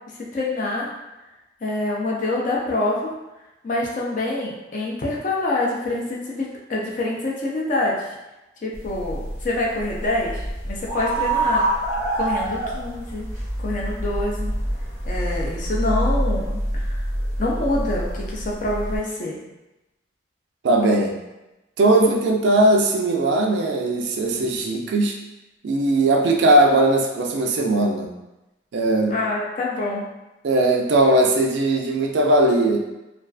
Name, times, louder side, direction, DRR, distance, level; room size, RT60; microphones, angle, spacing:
voice 1, 0.2-0.9 1.6-3.1 3.6-8.0 8.6-11.6 12.1-13.3 13.6-14.5 15.1-17.0 17.4-19.4 29.1-30.1, left 2 dB, 45° left, -3 dB, 0.4 m, -26 dB
sound 1, 8.7-19.0, right 1 dB, 15° left, 0.8 m, -26 dB
voice 2, 20.6-21.2 21.8-25.2 25.6-28.1 28.7-29.2 30.4-32.8, right 2 dB, 60° right, 2 dB, 0.3 m, -19 dB
2.4 x 2.3 x 2.3 m, 1.0 s
head